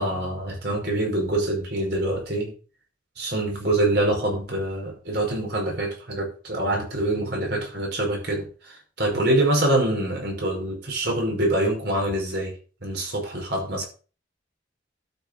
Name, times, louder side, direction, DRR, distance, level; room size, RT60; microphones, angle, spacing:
voice 1, 0.0-2.5 3.2-12.5 12.8-13.9, right 1 dB, 55° right, 5.2 m, -25 dB
12.5 x 6.8 x 5.3 m
head